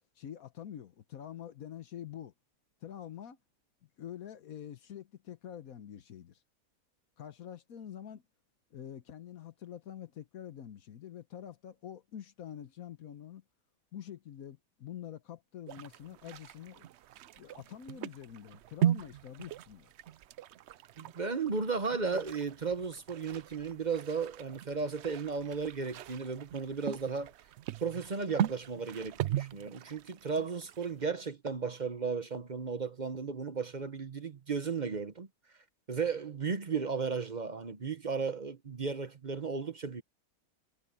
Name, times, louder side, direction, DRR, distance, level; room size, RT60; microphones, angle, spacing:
voice 1, 0.2-2.3 2.8-3.4 4.0-6.4 7.2-8.2 8.7-13.4 13.9-16.8 17.3-19.9, left 10 dB, 75° left, 1.4 m, -46 dB
sound 1, 15.7-31.1, right 11 dB, 65° right, 0.7 m, -38 dB
voice 2, 21.0-27.3 27.8-35.3 35.9-40.0, right 5 dB, 35° right, 0.9 m, -35 dB
omnidirectional pair, 1.5 m